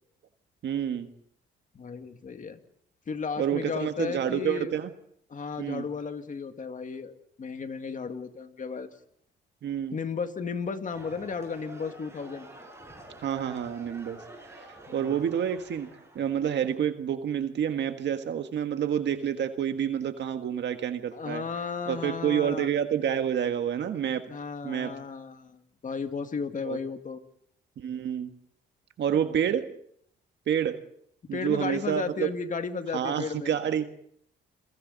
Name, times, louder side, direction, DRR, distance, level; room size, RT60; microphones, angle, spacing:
voice 1, 0.6-1.1 3.4-4.9 5.6-5.8 9.6-10.0 13.2-14.2 14.5-14.7 14.9-15.9 16.1-21.4 21.9-24.2 24.6-24.9 26.6-26.8 27.8-28.3 29.0-29.7 30.5-30.8 31.3-32.3 32.9-33.9, right 9 dB, 65° right, 7 dB, 1.6 m, -28 dB
voice 2, 1.7-2.6 3.1-4.7 5.3-8.9 9.9-12.5 14.9-15.2 21.1-22.7 24.3-27.2 29.1-29.3 31.3-33.6, left 5 dB, 40° left, 7 dB, 2.1 m, -34 dB
sound 1, 10.9-16.7, right 1 dB, 15° right, 7.9 m, -48 dB
29.5 x 23.0 x 4.1 m, 0.68 s
cardioid pair, 90°, 20 cm